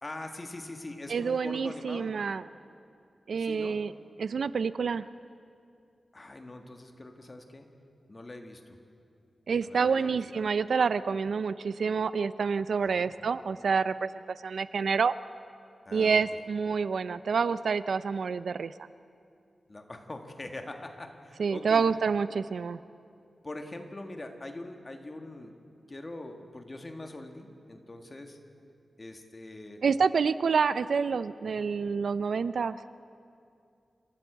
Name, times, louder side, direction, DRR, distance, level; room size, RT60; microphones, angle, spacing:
voice 1, 0.0-2.2 3.4-3.8 6.1-7.7 8.1-8.8 9.6-10.4 12.8-13.1 15.8-16.4 19.7-21.9 23.4-25.5 25.9-28.4 29.0-29.8 31.5-31.7, left 2 dB, 25° left, 5 dB, 1.6 m, -43 dB
voice 2, 1.1-2.4 3.3-3.9 4.2-5.1 9.5-14.1 14.4-15.1 15.9-18.7 21.4-22.8 29.8-32.8, right 5 dB, 75° right, 15 dB, 0.5 m, -28 dB
28.0 x 13.0 x 8.0 m, 2.4 s
wide cardioid pair, 160°, 0 cm